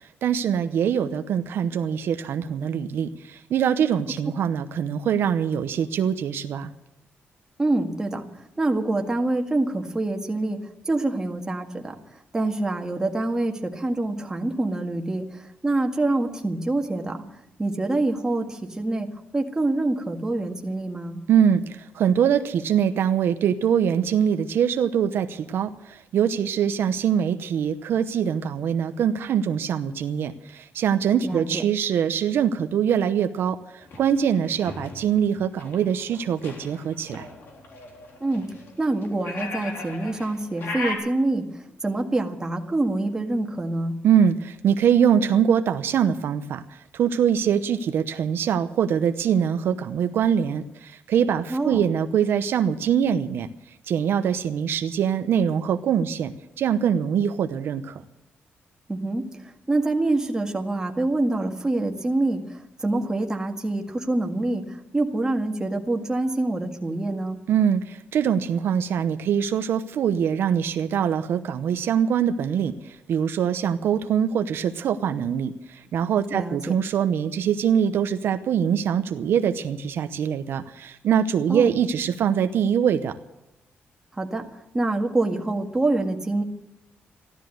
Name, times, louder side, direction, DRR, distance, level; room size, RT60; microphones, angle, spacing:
voice 1, 0.2-6.7 21.3-37.3 44.0-53.5 53.9-58.0 67.5-83.2, right 8 dB, 70° right, 9 dB, 0.8 m, -23 dB
voice 2, 7.6-8.3 8.6-10.6 10.9-11.9 12.3-17.2 17.6-19.1 19.3-21.2 31.2-31.6 38.2-38.5 38.8-44.0 51.5-51.8 58.9-67.4 76.3-76.7 81.5-81.7 84.2-84.5 84.7-86.4, right 2 dB, 15° right, 3 dB, 1.8 m, -26 dB
sound 1, 33.8-41.0, left 3 dB, 65° left, 3.8 m, -37 dB
14.5 x 12.5 x 7.8 m, 0.88 s
wide cardioid pair, 150°, 4 cm